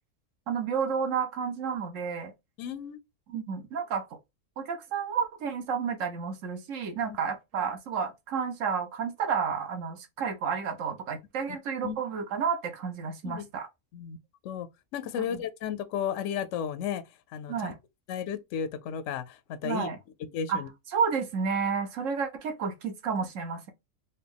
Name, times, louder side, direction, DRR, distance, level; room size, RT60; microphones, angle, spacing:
voice 1, 0.5-2.3 3.3-4.0 4.6-13.7 15.3-15.4 17.5-17.8 19.6-20.0 20.5-20.6 20.9-23.7, right 6 dB, 65° right, 1.1 m, -31 dB
voice 2, 2.6-3.0 7.1-7.2 11.8-12.0 13.2-13.5 13.9-14.2 14.4-14.7 14.9-17.0 17.3-17.7 18.1-19.9 20.3-20.7, left 8 dB, 65° left, 0.8 m, -33 dB
4.1 x 2.3 x 3.4 m
omnidirectional pair, 1.6 m